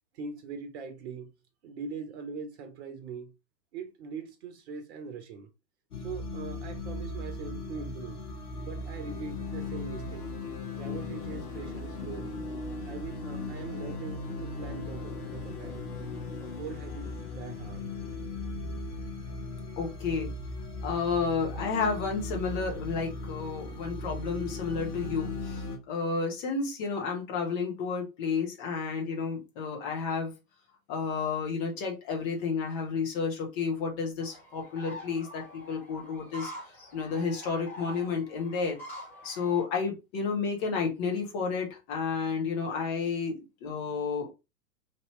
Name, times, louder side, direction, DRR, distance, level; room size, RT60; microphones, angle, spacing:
voice 1, 0.1-1.3 1.6-3.3 3.7-5.5 6.0-8.2 8.6-10.3 10.8-12.4 12.8-15.9 16.4-17.8, right 5 dB, 40° right, 0.9 m, -41 dB
sound 1, 5.9-25.8, left 2 dB, 65° left, 0.9 m, -37 dB
voice 2, 19.8-20.3 20.8-30.3 30.9-38.8 39.2-44.3, left 5 dB, 30° left, 1.1 m, -31 dB
sound 2, 34.2-39.6, equal, 5° left, 0.4 m, -46 dB
3.0 x 2.8 x 3.1 m
figure-of-eight pair, 105°, 49 cm